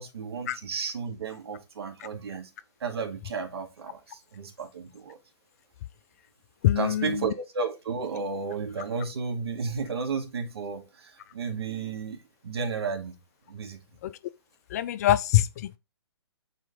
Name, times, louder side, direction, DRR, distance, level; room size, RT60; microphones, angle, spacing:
voice 1, 0.0-2.5 2.8-5.2 6.8-13.1 13.5-13.8, right 5 dB, 65° right, 2.2 m, -33 dB
voice 2, 6.6-7.1 14.0-14.1 14.7-15.8, left 13 dB, 35° left, 0.4 m, -24 dB
7.4 x 4.3 x 3.8 m
figure-of-eight pair, 130°, 14 cm